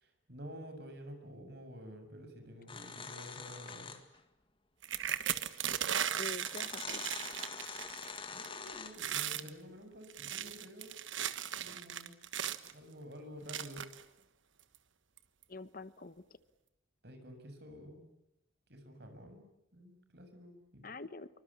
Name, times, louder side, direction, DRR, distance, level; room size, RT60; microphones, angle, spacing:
voice 1, 0.0-3.9 8.3-10.9 11.6-12.2 12.7-13.9 17.0-18.1 18.7-19.5 19.7-20.9, equal, 55° right, 6 dB, 6.8 m, -50 dB
sound 1, 2.7-4.2 5.5-5.6 6.4-9.1, left 5 dB, 25° left, 2.1 m, -45 dB
sound 2, 4.8-8.2 8.4-8.7 8.9-9.5 10.0-12.7 13.5-14.0 14.7-14.8 15.2-15.4, right 9 dB, 75° right, 1.4 m, -37 dB
voice 2, 6.1-7.0 15.5-16.2 20.8-21.3, left 3 dB, 45° left, 14 dB, 1.1 m, -45 dB
27.0 x 24.5 x 8.6 m, 0.86 s
head